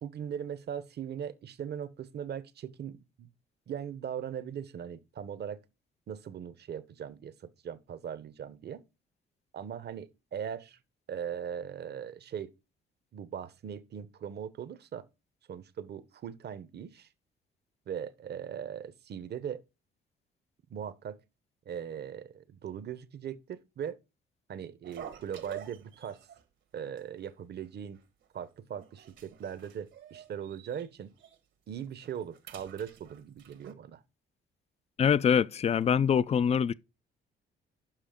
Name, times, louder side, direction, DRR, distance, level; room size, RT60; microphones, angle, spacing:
voice 1, 0.0-3.3 3.7-5.6 6.1-8.8 9.5-10.8 11.1-12.5 13.1-15.0 15.5-17.1 17.9-19.6 20.7-21.2 21.7-24.0 24.5-26.2 26.7-28.0 28.3-31.1 31.7-34.0, right 8 dB, 55° right, 0.9 m, -39 dB
sound 1, 24.8-26.4 26.8-27.0 27.3-27.4 27.9-28.4 28.8-30.9 31.2-31.4 31.8-33.7, right 9 dB, 70° right, 1.4 m, -48 dB
voice 2, 35.0-36.7, left 7 dB, 35° left, 0.4 m, -24 dB
7.4 x 5.8 x 5.1 m
cardioid pair, 90°, 20 cm